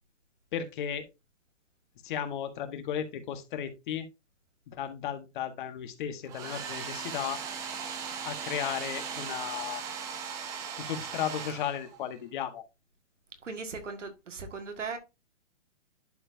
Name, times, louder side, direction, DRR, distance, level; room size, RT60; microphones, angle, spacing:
voice 1, 0.5-1.0 2.0-4.1 4.7-7.4 8.2-9.8 10.8-12.6, left 9 dB, 45° left, 1.4 m, -35 dB
Domestic sounds home sounds, 6.3-12.1, right 7 dB, 10° right, 0.5 m, -38 dB
voice 2, 13.4-15.0, right 4 dB, 90° right, 1.9 m, -38 dB
11.0 x 4.5 x 2.7 m
hypercardioid pair, 150°, 36 cm